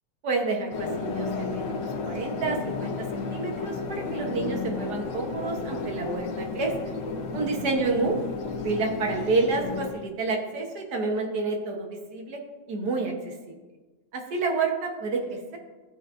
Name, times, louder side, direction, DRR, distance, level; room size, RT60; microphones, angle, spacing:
voice 1, 0.2-6.7 7.3-8.2 8.6-12.4 12.7-13.4 14.1-15.6, right 3 dB, 60° right, 2 dB, 1.5 m, -29 dB
sound 1, 0.7-9.9, left 3 dB, 70° left, 1.5 m, -32 dB
14.0 x 5.4 x 2.5 m, 1.3 s
omnidirectional pair, 2.1 m